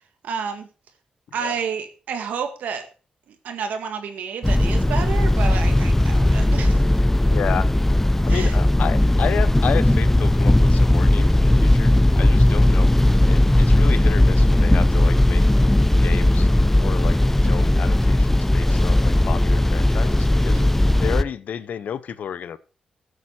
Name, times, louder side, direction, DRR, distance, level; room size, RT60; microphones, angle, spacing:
voice 1, 0.2-0.7 1.3-2.9 3.3-6.8 8.3-8.6 20.5-20.8, right 6 dB, 90° right, 1.8 m, -30 dB
sound 1, 4.4-21.2, left 1 dB, 10° left, 0.6 m, -17 dB
voice 2, 7.3-7.7 8.3-15.4 16.0-17.2 17.4-20.6 21.0-22.6, left 8 dB, 80° left, 0.8 m, -31 dB
14.0 x 8.2 x 4.3 m
cardioid pair, 65°, 3 cm